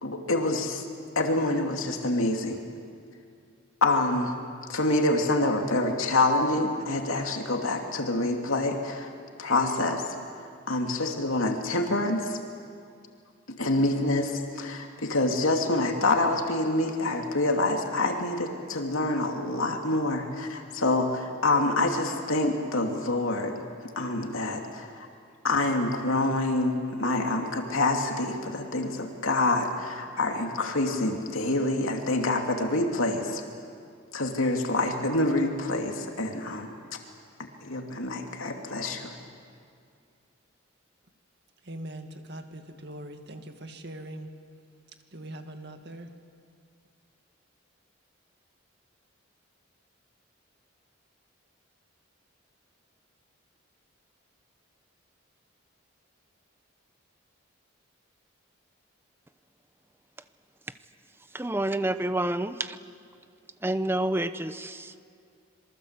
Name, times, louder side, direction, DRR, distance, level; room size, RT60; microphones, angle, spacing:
voice 1, 0.0-0.8 1.2-2.6 3.8-4.3 4.7-9.1 9.4-10.2 10.7-12.4 13.5-23.6 24.0-25.1 25.4-33.4 34.1-36.7 37.6-39.2, left 2 dB, 90° left, 3 dB, 2.7 m, -26 dB
voice 2, 41.6-44.3 45.1-46.1, right 1 dB, 55° right, 5 dB, 2.2 m, -41 dB
voice 3, 61.3-62.8 63.6-65.0, right 1 dB, 10° right, 11 dB, 0.8 m, -28 dB
26.5 x 23.0 x 8.3 m, 2.3 s
head